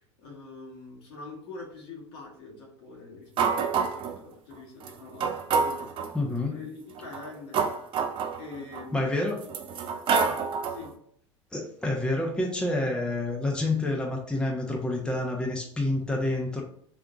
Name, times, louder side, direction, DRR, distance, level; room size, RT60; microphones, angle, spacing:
voice 1, 0.0-5.9 6.5-7.7 8.4-10.4 10.7-10.9, left 3 dB, 60° left, -2 dB, 1.6 m, -45 dB
sound 1, 3.4-4.2 4.8-4.9 5.2-6.1 7.0-8.8 9.4-10.9, right 5 dB, 35° right, 0.6 m, -27 dB
voice 2, 6.1-6.6 8.9-9.4 11.5-16.6, left 2 dB, 5° left, 0 dB, 0.9 m, -28 dB
3.9 x 3.4 x 3.8 m, 0.66 s
figure-of-eight pair, 75°, 15 cm